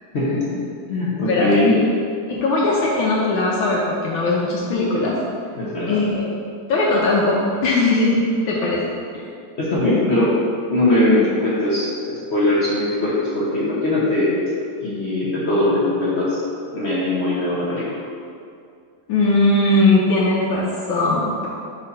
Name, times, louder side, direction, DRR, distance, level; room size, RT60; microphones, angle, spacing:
voice 1, 0.1-0.4 0.9-1.7 5.5-6.0 9.6-10.3 10.7-14.4 14.8-16.4 16.7-18.0, left 1 dB, 45° left, -8 dB, 0.9 m, -20 dB
voice 2, 1.2-1.8 2.3-5.2 5.9-8.2 8.5-8.8 19.1-21.5, left 2 dB, 80° left, -5 dB, 1.5 m, -19 dB
4.8 x 4.1 x 5.4 m, 2.4 s
omnidirectional pair, 2.2 m